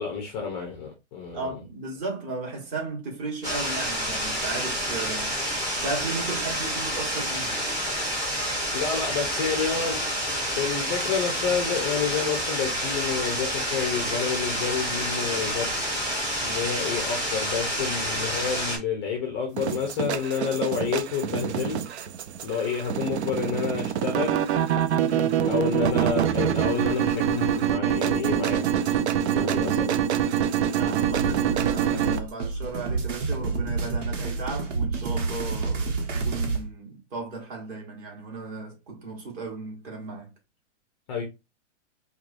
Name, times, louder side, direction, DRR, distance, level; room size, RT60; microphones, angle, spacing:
voice 1, 0.0-1.6 8.7-10.0 10.6-15.7 16.4-22.1 22.4-24.5 25.5-29.0 29.3-30.0 41.1-41.2, left 6 dB, 20° left, 0.5 m, -29 dB
voice 2, 1.3-5.4 5.7-7.6 24.9-25.6 29.3-29.8 30.7-40.3, right 3 dB, 30° right, 1.4 m, -35 dB
sound 1, 3.4-18.8, equal, 10° right, 0.8 m, -28 dB
sound 2, 19.6-32.2, right 9 dB, 65° right, 0.5 m, -25 dB
sound 3, 31.0-36.6, right 3 dB, 80° right, 1.2 m, -29 dB
4.6 x 2.3 x 2.5 m
hypercardioid pair, 155°, 37 cm